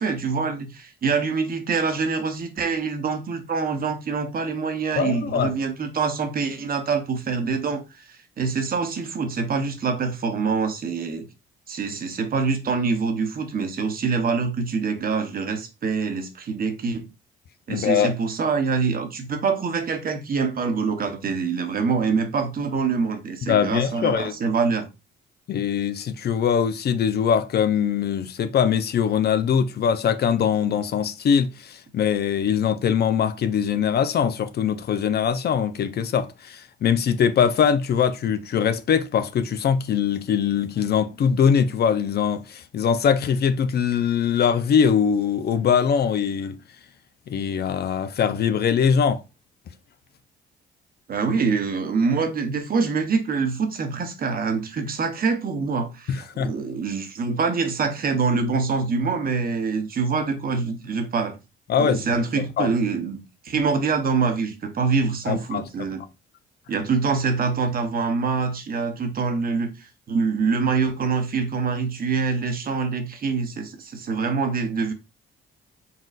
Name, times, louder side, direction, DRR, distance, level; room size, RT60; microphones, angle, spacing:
voice 1, 0.0-11.3 11.7-17.1 17.7-24.9 51.1-61.3 61.7-66.0 66.7-74.9, right 5 dB, 50° right, 1.0 m, -25 dB
voice 2, 5.0-5.5 17.7-18.1 23.5-24.3 25.5-46.6 47.3-49.2 56.1-56.5 61.7-62.1 62.6-62.7 65.3-65.6, left 7 dB, 55° left, 0.5 m, -22 dB
4.2 x 3.8 x 2.4 m
cardioid pair, 90°, 20 cm